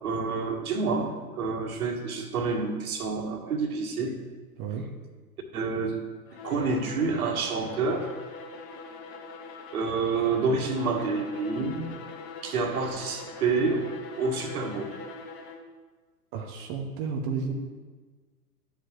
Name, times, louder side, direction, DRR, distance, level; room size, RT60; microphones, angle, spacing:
voice 1, 0.0-4.1 5.5-6.0 6.4-8.1 9.7-11.9 12.4-13.9 14.2-14.9, right 4 dB, 60° right, 4 dB, 1.5 m, -28 dB
Bowed string instrument, 6.3-15.8, left 3 dB, 40° left, 1.1 m, -43 dB
voice 2, 16.3-17.5, right 5 dB, 20° right, 2 dB, 0.4 m, -32 dB
9.9 x 7.2 x 3.1 m, 1.4 s
figure-of-eight pair, 110°, 48 cm